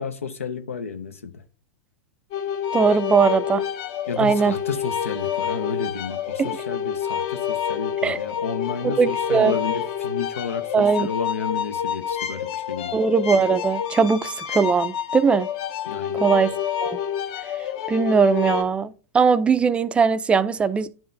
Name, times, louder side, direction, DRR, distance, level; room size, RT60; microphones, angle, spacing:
voice 1, 0.0-1.4 4.1-13.0 15.9-16.5, left 5 dB, 90° left, 0.6 m, -32 dB
sound 1, 2.3-18.6, left 9 dB, 45° left, 0.7 m, -28 dB
voice 2, 2.7-3.6 4.2-4.5 6.4-6.5 8.0-8.2 8.8-9.6 10.7-11.1 12.9-15.5 16.1-16.5 16.8-17.0 17.9-20.9, right 5 dB, 15° right, 0.3 m, -20 dB
10.0 x 3.6 x 2.6 m
hypercardioid pair, 110°, 7 cm